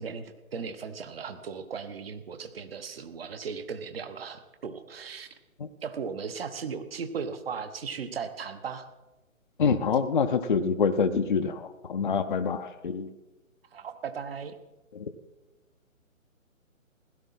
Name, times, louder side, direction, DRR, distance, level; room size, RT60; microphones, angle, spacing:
voice 1, 0.0-5.3 5.8-8.8 13.7-14.6, right 6 dB, 45° right, 10 dB, 1.2 m, -37 dB
voice 2, 9.6-13.1 15.0-15.1, left 5 dB, 40° left, 7 dB, 0.6 m, -26 dB
16.5 x 12.0 x 4.3 m, 1.1 s
figure-of-eight pair, 140°, 41 cm